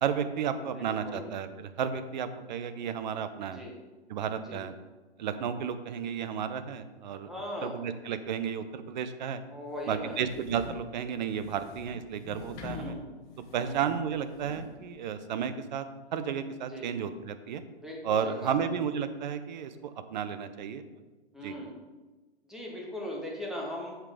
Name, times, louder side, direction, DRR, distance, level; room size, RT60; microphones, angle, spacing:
voice 1, 0.0-3.6 4.1-4.7 5.2-7.3 7.6-9.4 9.9-12.9 13.5-15.9 16.1-17.6 18.0-20.9 21.4-21.6, right 7 dB, 45° right, 11 dB, 0.6 m, -33 dB
voice 2, 0.6-1.2 3.5-3.7 4.5-4.6 7.3-7.8 9.5-10.2 12.6-13.0 13.6-13.8 16.7-16.9 17.8-18.6 21.3-21.7 22.5-24.0, left 1 dB, ahead, -2 dB, 1.0 m, -39 dB
sound 1, 9.7-14.8, left 6 dB, 35° left, 1.2 m, -46 dB
7.3 x 5.0 x 3.5 m, 1.2 s
figure-of-eight pair, 125°, 33 cm